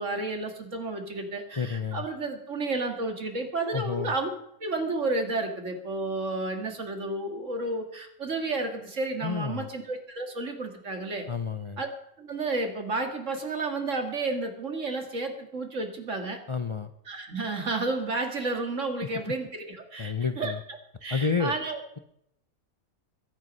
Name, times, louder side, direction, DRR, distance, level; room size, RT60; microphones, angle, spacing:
voice 1, 0.0-4.3 4.6-11.3 11.8-11.9 12.2-16.4 17.1-21.8, right 3 dB, 55° right, 4 dB, 2.4 m, -31 dB
voice 2, 1.6-2.1 3.7-4.1 9.2-9.7 11.3-11.8 16.5-16.9 20.0-20.6 21.1-21.5, left 5 dB, 35° left, 9 dB, 0.5 m, -30 dB
22.5 x 9.4 x 5.4 m, 0.76 s
omnidirectional pair, 1.5 m